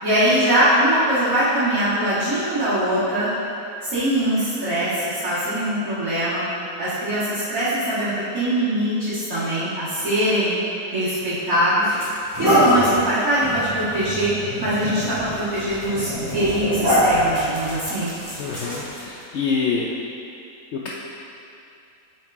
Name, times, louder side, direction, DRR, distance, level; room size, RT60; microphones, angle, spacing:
voice 1, 0.0-3.3 3.8-6.4 6.8-10.5 10.9-11.9 12.4-18.1, right 1 dB, 60° right, -15 dB, 2.1 m, -22 dB
sound 1, 11.1-11.2 11.8-19.2, equal, 10° right, 1.5 m, -24 dB
voice 2, 18.4-19.9, left 5 dB, 75° left, -3 dB, 0.6 m, -25 dB
7.9 x 4.8 x 3.5 m, 2.7 s
omnidirectional pair, 1.7 m